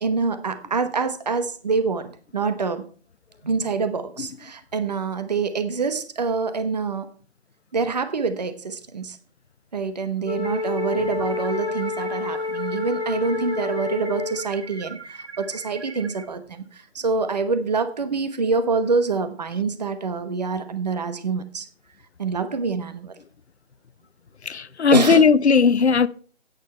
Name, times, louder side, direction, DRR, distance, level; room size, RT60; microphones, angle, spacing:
voice 1, 0.0-2.8 3.4-7.1 7.7-9.2 9.7-21.7 22.2-23.2 24.9-25.3, right 4 dB, 40° right, 1.0 m, -26 dB
Wind instrument woodwind instrument, 10.2-14.6, left 4 dB, 40° left, 1.0 m, -29 dB
sound 1, 10.4-16.2, right 4 dB, 85° right, 1.8 m, -41 dB
voice 2, 24.4-26.1, left 5 dB, 90° left, 0.7 m, -17 dB
11.5 x 9.2 x 4.3 m
figure-of-eight pair, 165°, 32 cm